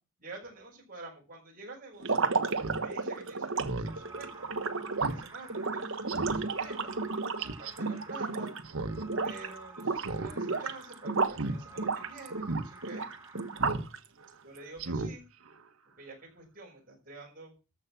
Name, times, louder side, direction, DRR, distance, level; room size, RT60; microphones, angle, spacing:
voice 1, 0.2-2.3 2.8-4.5 5.1-8.5 9.2-13.1 14.4-15.2 16.0-17.5, right 2 dB, 40° right, -1 dB, 5.9 m, -48 dB
sound 1, 2.0-8.7 9.0-9.5 9.8-11.4 11.8-14.0, right 4 dB, 60° right, 1.2 m, -32 dB
Speech synthesizer, 2.6-2.8 3.2-3.3 3.6-3.9 4.3-4.4 5.0-5.2 5.6-5.7 6.1-6.4 7.4-7.7 8.6-9.0 9.3-9.4 10.0-10.3 10.6-10.8 11.3-11.6 12.0-12.1 12.4-12.6 13.6-13.9 14.2-14.3 14.8-15.1 15.5-15.6, right 2 dB, 80° right, 1.3 m, -35 dB
sound 2, 3.8-13.7, right 3 dB, 15° right, 1.2 m, -51 dB
14.0 x 5.8 x 7.3 m, 0.31 s
head